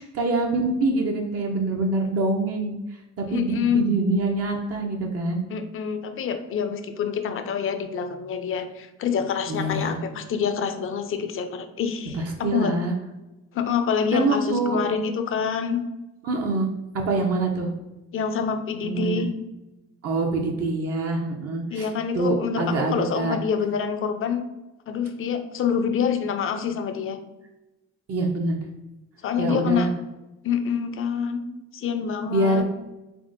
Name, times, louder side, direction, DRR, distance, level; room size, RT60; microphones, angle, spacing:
voice 1, 0.0-2.8 3.2-5.4 9.5-10.0 12.1-12.9 14.1-14.8 16.2-16.7 16.9-17.7 18.8-19.3 20.0-23.3 28.1-28.6 29.4-29.9 32.3-32.6, right 2 dB, 55° right, 1 dB, 0.6 m, -25 dB
voice 2, 3.3-3.8 5.5-12.7 13.5-15.8 18.1-19.3 21.7-24.5 24.9-27.2 29.2-29.9 30.4-31.5 31.7-32.6, left 7 dB, 45° left, 8 dB, 0.5 m, -26 dB
3.5 x 3.4 x 2.6 m, 1.0 s
cardioid pair, 90°, 30 cm